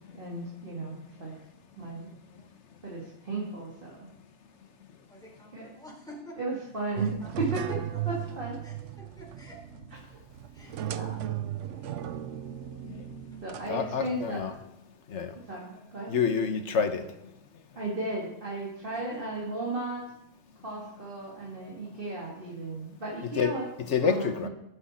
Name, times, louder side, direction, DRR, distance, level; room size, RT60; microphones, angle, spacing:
voice 1, 0.1-1.3 1.8-2.1 2.8-4.1 5.5-5.7 6.4-7.1 7.4-7.6 8.1-8.6 10.1-10.2 10.8-11.2 13.4-14.4 15.5-16.1 17.8-20.0 20.6-23.6 24.0-24.5, right 2 dB, 50° right, 2.4 m, -35 dB
voice 2, 5.1-6.4 6.9-7.4 7.9-8.2 8.6-10.0 10.5-10.8 13.3-13.4 18.9-19.2, equal, 5° left, 4.5 m, -49 dB
sound 1, 7.0-14.5, right 12 dB, 85° right, 1.0 m, -36 dB
voice 3, 13.7-14.6 15.1-15.3 16.1-17.0 21.2-21.3 23.2-24.5, left 6 dB, 75° left, 1.4 m, -28 dB
19.5 x 8.2 x 4.3 m
omnidirectional pair, 1.2 m